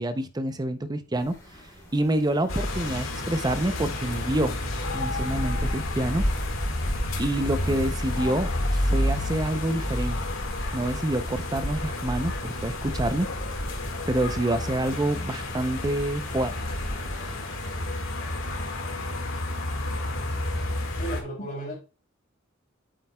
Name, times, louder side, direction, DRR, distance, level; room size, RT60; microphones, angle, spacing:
voice 1, 0.0-1.4 1.9-4.6 4.9-6.3 7.2-10.2 10.7-13.3 14.1-16.6, right 1 dB, 20° right, 10 dB, 0.5 m, -27 dB
sound 1, 1.2-17.3, left 1 dB, 15° left, 2.9 m, -50 dB
sound 2, 2.5-21.2, left 1 dB, 80° left, 1.8 m, -30 dB
voice 2, 20.9-21.7, right 1 dB, 35° left, -5 dB, 2.8 m, -34 dB
8.5 x 7.7 x 2.2 m, 0.32 s
head